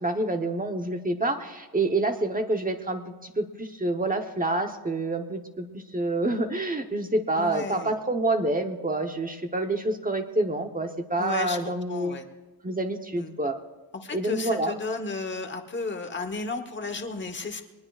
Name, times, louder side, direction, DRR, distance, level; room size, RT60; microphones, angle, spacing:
voice 1, 0.0-12.2 12.6-13.6 14.1-14.8, right 2 dB, 20° right, 4 dB, 0.9 m, -27 dB
voice 2, 7.3-8.0 11.2-12.3 13.2-13.4 13.9-17.6, left 3 dB, 25° left, 6 dB, 1.1 m, -33 dB
22.5 x 20.0 x 2.4 m, 1.2 s
wide cardioid pair, 160°, 42 cm